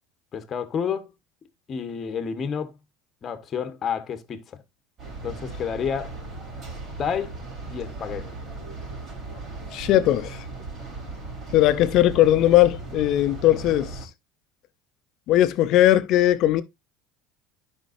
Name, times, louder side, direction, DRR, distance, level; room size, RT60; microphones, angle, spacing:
voice 1, 0.3-1.1 1.7-2.7 3.2-4.6 5.2-6.2 7.0-7.4 7.7-8.3, left 7 dB, 40° left, 1.4 m, -30 dB
sound 1, 5.0-14.1, right 3 dB, 45° right, 4.1 m, -37 dB
voice 2, 9.7-10.4 11.5-13.9 15.3-16.6, left 13 dB, 60° left, 0.8 m, -19 dB
11.0 x 5.4 x 2.6 m
supercardioid pair, 95°, 0 cm